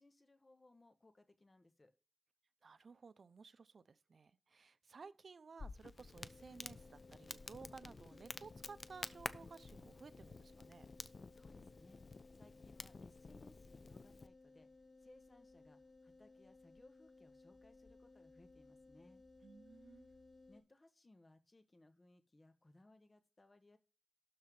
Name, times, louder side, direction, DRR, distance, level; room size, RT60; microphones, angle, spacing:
voice 1, 0.0-1.9 11.3-12.0 12.3-19.2 20.5-23.8, left 2 dB, 40° left, 1.6 m, -66 dB
voice 2, 2.6-10.9 19.4-20.1, right 4 dB, 80° right, 0.6 m, -57 dB
Crackle, 5.6-14.3, left 4 dB, 65° left, 0.7 m, -51 dB
sound 1, 6.3-20.6, left 3 dB, 85° left, 3.7 m, -62 dB
12.5 x 4.3 x 5.4 m
wide cardioid pair, 70°, 0 cm